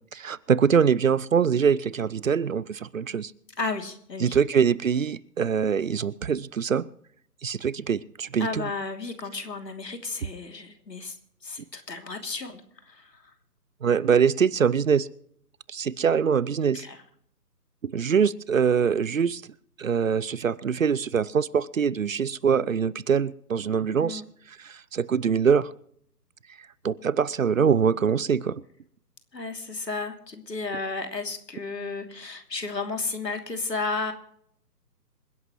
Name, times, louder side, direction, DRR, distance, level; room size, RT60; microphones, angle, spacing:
voice 1, 0.1-3.3 4.2-6.8 7.4-8.7 13.8-15.1 15.7-16.9 17.9-19.4 19.8-24.2 24.6-25.7 26.8-28.6, right 7 dB, 55° right, 22 dB, 0.7 m, -23 dB
voice 2, 3.6-4.4 8.4-11.2 11.4-13.3 16.7-17.0 24.0-24.2 29.3-34.1, left 3 dB, 85° left, 5 dB, 3.0 m, -33 dB
27.0 x 11.0 x 3.1 m, 0.66 s
figure-of-eight pair, 155°, 48 cm